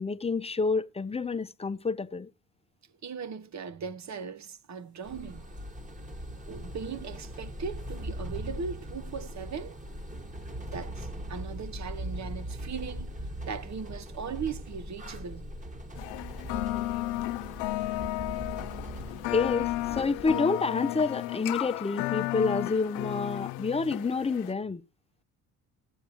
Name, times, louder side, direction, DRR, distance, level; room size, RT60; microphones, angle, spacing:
voice 1, 0.0-2.3 19.3-24.8, left 4 dB, 15° left, 0.6 m, -28 dB
voice 2, 3.0-5.4 6.5-9.8 10.7-13.2 13.5-15.5 18.7-18.9, right 6 dB, 40° right, 1.0 m, -38 dB
sound 1, 5.0-20.3, equal, 15° right, 1.7 m, -40 dB
sound 2, 16.0-24.5, left 18 dB, 80° left, 0.6 m, -33 dB
14.5 x 8.2 x 3.0 m
supercardioid pair, 70°, 45 cm